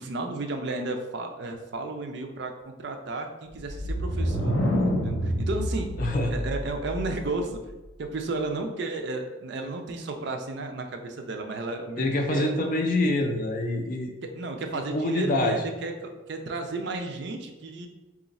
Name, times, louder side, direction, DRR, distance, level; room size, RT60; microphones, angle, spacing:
voice 1, 0.0-4.6 5.0-7.6 8.0-12.5 14.2-17.9, right 3 dB, 55° right, 4 dB, 0.4 m, -33 dB
sound 1, 3.5-7.3, equal, 80° left, 0.8 m, -28 dB
voice 2, 6.0-6.3 12.0-14.1 14.9-15.6, left 2 dB, 40° left, 3 dB, 0.4 m, -25 dB
3.0 x 2.4 x 4.0 m, 1.1 s
head